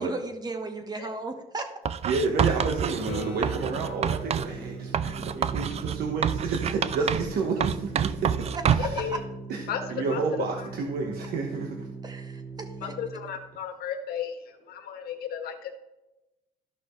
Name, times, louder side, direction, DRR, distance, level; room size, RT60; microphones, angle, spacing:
voice 1, 0.0-1.7 8.5-8.9 12.0-12.9, right 3 dB, 25° right, 6 dB, 1.3 m, -35 dB
Writing, 1.8-4.5 4.9-7.3 7.6-9.0, right 8 dB, 40° right, 0.4 m, -27 dB
voice 2, 2.0-9.0 9.5-9.6 9.9-11.9, right 4 dB, 65° right, 1 dB, 1.3 m, -30 dB
Organ, 2.7-13.4, right 4 dB, 10° left, 2.1 m, -41 dB
Acoustic guitar / Strum, 3.1-6.8 11.7-11.8, left 3 dB, 85° left, 1.7 m, -44 dB
voice 3, 8.8-9.2 9.7-10.4 12.8-15.7, left 8 dB, 70° left, 5 dB, 1.6 m, -34 dB
13.5 x 6.0 x 3.2 m, 0.98 s
cardioid pair, 110°, 17 cm